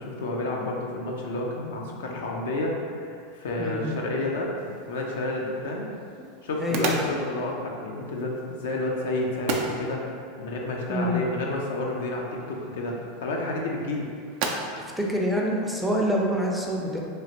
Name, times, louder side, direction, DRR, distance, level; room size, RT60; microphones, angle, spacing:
voice 1, 0.0-5.9 6.4-10.0 10.4-14.1, left 2 dB, 75° left, -1 dB, 0.4 m, -30 dB
voice 2, 3.6-3.9 6.6-6.9 10.9-11.2 15.0-17.0, equal, ahead, -2 dB, 0.5 m, -26 dB
sound 1, 4.6-16.3, right 4 dB, 60° right, 0.3 m, -37 dB
3.1 x 2.4 x 2.8 m, 2.3 s
hypercardioid pair, 95°, 0 cm